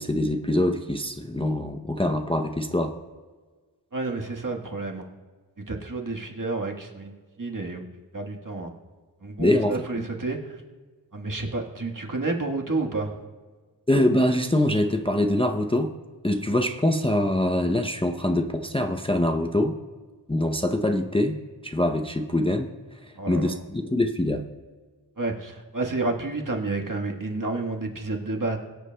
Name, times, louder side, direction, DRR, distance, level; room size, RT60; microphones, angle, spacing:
voice 1, 0.0-2.9 9.4-9.7 13.9-15.9 16.2-19.7 20.3-21.4 21.6-22.7 23.0-24.4, left 1 dB, 10° left, 4 dB, 0.6 m, -24 dB
voice 2, 3.9-5.1 5.7-7.9 8.1-8.7 9.2-10.6 11.1-13.1 23.2-23.6 25.2-28.6, right 3 dB, 45° right, 1 dB, 1.5 m, -30 dB
22.5 x 8.1 x 2.3 m, 1.4 s
wide cardioid pair, 65°, 44 cm